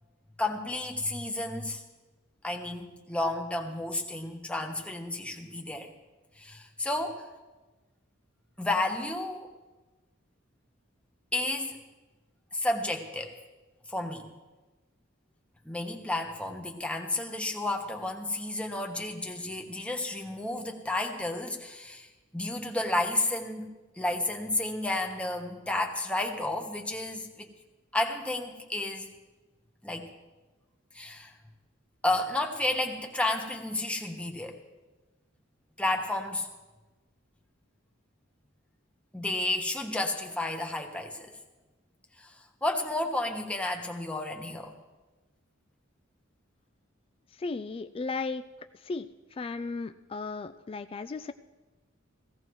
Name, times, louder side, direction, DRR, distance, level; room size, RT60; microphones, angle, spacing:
voice 1, 0.4-1.8 2.4-5.9 6.4-7.3 8.6-9.5 11.3-11.8 12.5-13.3 13.9-14.3 15.6-22.1 22.3-23.7 24.0-27.5 27.9-29.1 29.8-30.1 30.9-31.3 32.0-34.6 35.8-36.5 39.1-41.3 42.2-42.3 42.6-44.7, left 2 dB, 5° left, 2 dB, 1.1 m, -31 dB
voice 2, 47.4-48.5 48.8-49.1 49.4-51.3, left 3 dB, 30° left, 10 dB, 0.3 m, -35 dB
17.5 x 16.0 x 3.1 m, 1.2 s
head